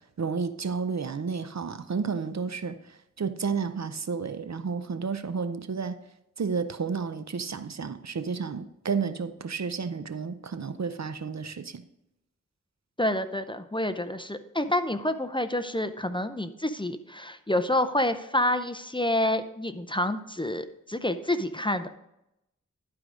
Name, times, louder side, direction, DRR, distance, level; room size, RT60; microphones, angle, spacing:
voice 1, 0.0-2.8 3.2-6.0 6.4-11.8, right 5 dB, 60° right, 11 dB, 0.6 m, -31 dB
voice 2, 13.0-21.9, left 1 dB, 15° left, 10 dB, 0.6 m, -28 dB
11.5 x 4.7 x 5.0 m, 0.85 s
wide cardioid pair, 50°, 31 cm